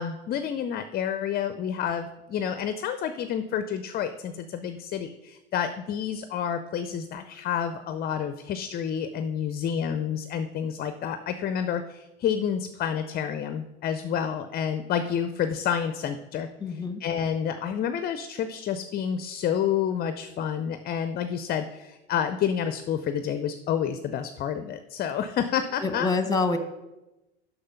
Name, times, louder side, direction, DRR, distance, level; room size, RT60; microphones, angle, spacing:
voice 1, 0.0-16.5 17.0-26.1, left 8 dB, 30° left, 10 dB, 0.5 m, -29 dB
voice 2, 16.6-17.0 25.8-26.6, left 3 dB, 10° left, 9 dB, 0.9 m, -26 dB
6.6 x 5.8 x 5.6 m, 0.99 s
hypercardioid pair, 85°, 32 cm